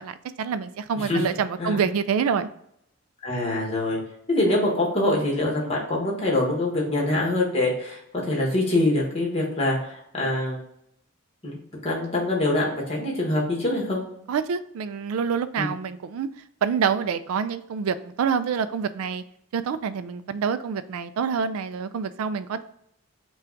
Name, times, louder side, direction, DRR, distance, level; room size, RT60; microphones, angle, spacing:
voice 1, 0.0-2.5 14.3-16.3 16.6-19.2 19.5-22.6, right 6 dB, 80° right, 12 dB, 0.3 m, -26 dB
voice 2, 0.9-1.2 1.6-1.8 3.2-4.0 4.3-10.6 11.4-14.0 15.6-15.7, left 1 dB, 30° left, -2 dB, 1.3 m, -24 dB
5.6 x 2.4 x 3.8 m, 0.73 s
head